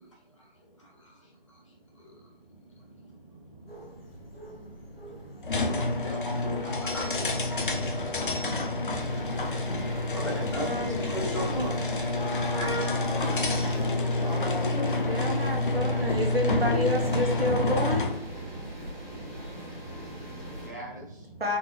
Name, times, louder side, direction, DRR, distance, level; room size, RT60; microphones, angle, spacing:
voice 1, 0.8-1.2 2.0-2.2 2.5-2.6 2.9-3.0 3.3-14.2 18.5-20.7, right 1 dB, 30° left, -3 dB, 1.1 m, -41 dB
sound 1, 3.7-14.8, right 1 dB, 75° left, 1.3 m, -44 dB
sound 2, 5.4-18.2, left 2 dB, 60° left, 0.6 m, -28 dB
voice 2, 5.7-7.4 14.2-14.9 20.6-21.3, left 1 dB, 20° right, -5 dB, 0.7 m, -42 dB
sound 3, 8.9-20.7, right 1 dB, 10° left, 0.9 m, -41 dB
voice 3, 10.4-11.6 15.1-18.1 21.4-21.6, equal, 75° right, 2 dB, 1.1 m, -30 dB
4.1 x 3.2 x 3.2 m, 0.69 s
figure-of-eight pair, 160°, 30 cm